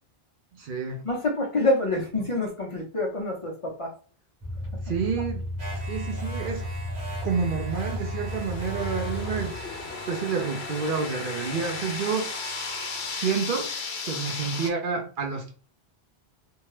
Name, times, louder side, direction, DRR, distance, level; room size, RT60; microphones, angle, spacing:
voice 1, 0.5-1.0 4.9-5.4 5.7-6.7 7.2-9.6 10.1-12.5 13.1-13.7 14.1-15.5, right 5 dB, 60° right, 0.7 m, -29 dB
voice 2, 1.0-3.9, left 2 dB, 40° left, 0.6 m, -26 dB
sound 1, 4.4-10.0, equal, 15° right, 0.8 m, -34 dB
sound 2, 5.6-13.6, right 2 dB, 90° right, 1.2 m, -40 dB
sound 3, 8.3-14.7, left 5 dB, 85° left, 1.0 m, -35 dB
2.7 x 2.2 x 3.1 m
omnidirectional pair, 1.1 m